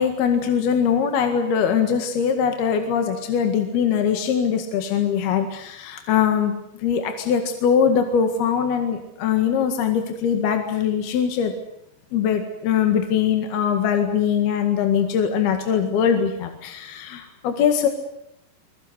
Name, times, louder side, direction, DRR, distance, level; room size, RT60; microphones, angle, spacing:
voice 1, 0.0-6.5 6.8-11.5 12.1-17.9, left 7 dB, 65° left, 5 dB, 3.6 m, -22 dB
25.0 x 21.0 x 8.1 m, 0.81 s
omnidirectional pair, 5.2 m